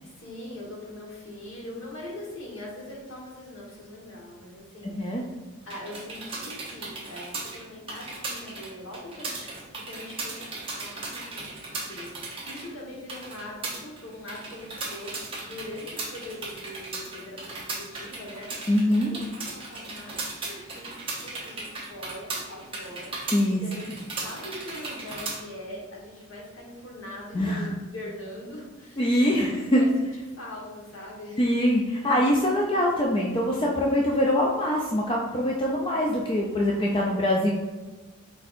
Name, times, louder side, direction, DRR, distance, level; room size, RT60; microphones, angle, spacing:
voice 1, 0.0-5.4 5.7-9.5 9.8-30.1 30.4-31.4 35.8-36.3 36.7-36.8, left 1 dB, 65° left, -4 dB, 1.3 m, -42 dB
sound 1, 5.6-25.4, right 3 dB, 25° right, 0.7 m, -37 dB
voice 2, 18.7-19.1 23.3-23.6 27.3-27.7 29.0-29.8 31.4-37.5, left 1 dB, 25° left, -2 dB, 0.4 m, -23 dB
4.6 x 4.2 x 2.5 m, 1.2 s
head